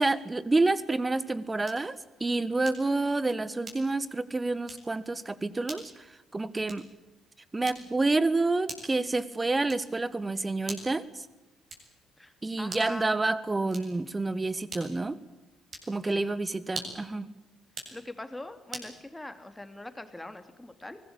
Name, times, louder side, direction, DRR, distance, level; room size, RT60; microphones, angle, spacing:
voice 1, 0.0-6.1 6.3-6.8 7.5-11.3 12.4-15.2 15.9-17.3, right 2 dB, 20° right, 17 dB, 1.6 m, -28 dB
sound 1, 1.6-2.0 2.6-3.0 3.6-4.1 4.6-4.9 5.6-5.9 6.6-7.0 7.6-8.1 8.7-9.0 9.7-10.0 10.6-11.0 11.7-12.0 12.6-13.0 13.7-14.1 14.7-15.1 15.7-16.0 16.6-17.1 17.6-18.0 18.7-19.0, right 2 dB, 40° right, 7.7 m, -43 dB
voice 2, 12.2-13.2 16.0-16.3 17.9-21.0, left 1 dB, 10° left, 9 dB, 3.0 m, -42 dB
24.5 x 19.0 x 8.8 m, 1.0 s
figure-of-eight pair, 45°, 0 cm